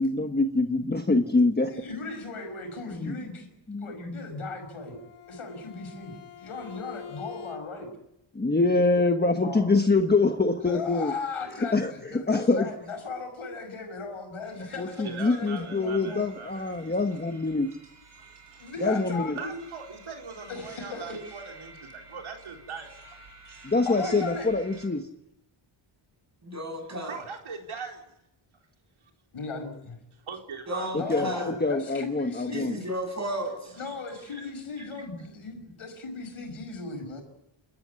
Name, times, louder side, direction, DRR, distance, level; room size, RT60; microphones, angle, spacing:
voice 1, 0.0-1.7 2.9-3.2 3.7-3.9 8.3-11.1 11.7-12.7 14.8-17.7 18.8-19.3 23.6-25.0 30.9-31.3 31.6-32.7, left 3 dB, 20° left, 1.3 m, -25 dB
voice 2, 1.7-3.5 3.8-5.0 5.3-7.9 9.4-9.7 10.6-16.3 18.6-19.5 20.5-21.2 23.8-24.5 29.3-30.0 31.0-32.8 33.8-37.2, left 4 dB, 85° left, 5.7 m, -37 dB
Bowed string instrument, 4.6-8.0, left 8 dB, 55° left, 4.5 m, -46 dB
sound 1, 14.4-24.9, right 3 dB, 55° right, 7.6 m, -51 dB
voice 3, 15.0-16.7 18.2-18.6 19.4-23.3 27.1-28.0 30.2-30.9 33.6-35.0, right 5 dB, 75° right, 4.2 m, -41 dB
voice 4, 26.4-27.1 30.7-31.6 32.5-33.7, equal, 35° right, 7.5 m, -33 dB
29.0 x 13.5 x 9.6 m
wide cardioid pair, 125°, 49 cm